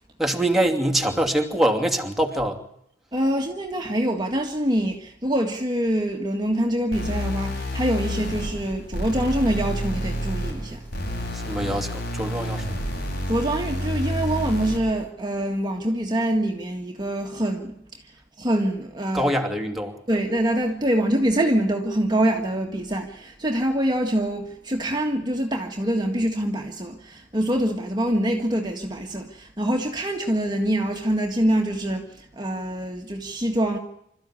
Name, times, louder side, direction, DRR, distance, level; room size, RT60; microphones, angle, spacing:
voice 1, 0.2-2.6 11.3-12.8 19.1-20.0, right 1 dB, ahead, 2.7 m, -24 dB
voice 2, 3.1-10.8 13.3-18.0 18.4-19.3 20.1-33.8, right 1 dB, 25° right, 1.9 m, -25 dB
sound 1, 6.9-14.9, equal, 60° left, 7.5 m, -29 dB
26.5 x 13.5 x 9.9 m
head